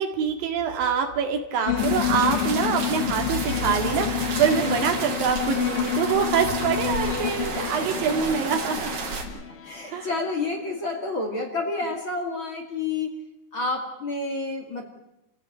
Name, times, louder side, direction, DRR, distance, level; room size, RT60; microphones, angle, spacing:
voice 1, 0.0-8.9 9.9-10.1, right 7 dB, 90° right, 4 dB, 3.8 m, -25 dB
sound 1, 1.7-10.7, left 10 dB, 55° left, 1.6 m, -29 dB
sound 2, 1.8-9.2, right 4 dB, 55° right, 4.0 m, -32 dB
voice 2, 8.1-8.6 9.6-13.1 13.5-14.8, left 3 dB, 40° left, 2 dB, 3.1 m, -29 dB
28.0 x 15.5 x 9.0 m, 0.84 s
omnidirectional pair, 3.9 m